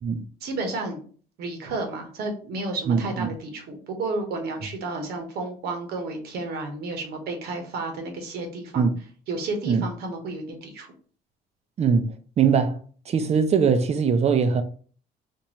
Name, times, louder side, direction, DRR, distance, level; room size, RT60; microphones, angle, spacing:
voice 1, 0.4-1.0 1.4-8.9 9.3-10.9, right 2 dB, 70° right, 1.1 m, -32 dB
voice 2, 2.9-3.3 8.8-9.0 9.7-9.8 11.8-12.8 13.1-14.6, right 6 dB, 40° right, 0.6 m, -21 dB
4.4 x 2.5 x 3.0 m
cardioid pair, 110°, 17 cm